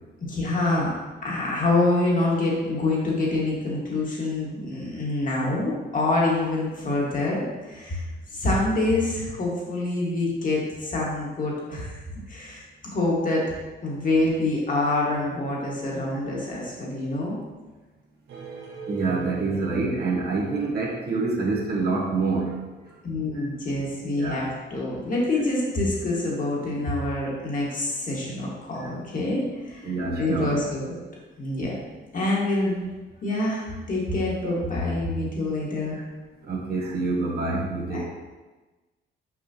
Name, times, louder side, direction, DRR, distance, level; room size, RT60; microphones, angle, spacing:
voice 1, 0.3-0.9 1.2-8.1 8.3-12.0 12.3-12.6 12.9-13.4 13.8-17.4 23.0-30.9 31.4-31.8 32.1-32.9 33.2-36.0 37.9-38.0, left 2 dB, 40° left, -4 dB, 2.0 m, -26 dB
sound 1, 18.3-21.3, right 4 dB, 75° right, 1.2 m, -40 dB
voice 2, 18.9-22.6 22.8-22.9 24.1-24.4 28.8-28.9 29.8-30.6 36.4-38.0, right 3 dB, 55° right, -2 dB, 1.3 m, -26 dB
6.1 x 5.0 x 3.0 m, 1.2 s
cardioid pair, 90°, 20 cm